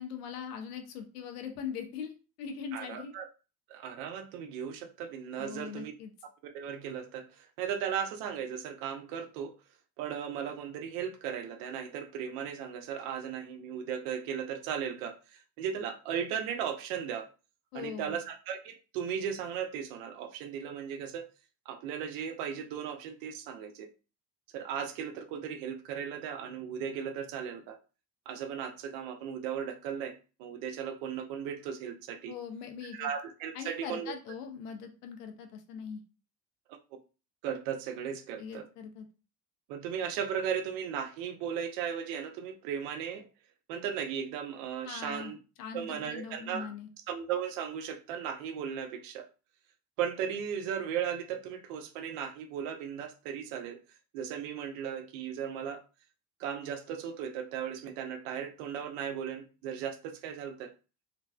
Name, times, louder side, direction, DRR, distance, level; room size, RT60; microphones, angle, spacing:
voice 1, 0.0-3.1 5.4-6.1 17.7-18.2 32.3-33.1 33.5-36.0 38.4-39.0 44.8-46.9, left 7 dB, 65° left, 5 dB, 0.7 m, -41 dB
voice 2, 2.7-3.3 3.7-5.9 6.4-9.5 10.0-17.3 17.7-21.3 21.7-23.9 24.5-27.8 28.3-32.3 32.9-34.1 37.4-38.7 39.7-43.3 43.7-45.4 45.7-46.7 47.1-49.3 50.0-53.8 54.1-55.8 56.4-60.7, right 8 dB, 50° right, 6 dB, 0.7 m, -36 dB
3.1 x 2.5 x 2.3 m, 0.33 s
figure-of-eight pair, 60°, 50 cm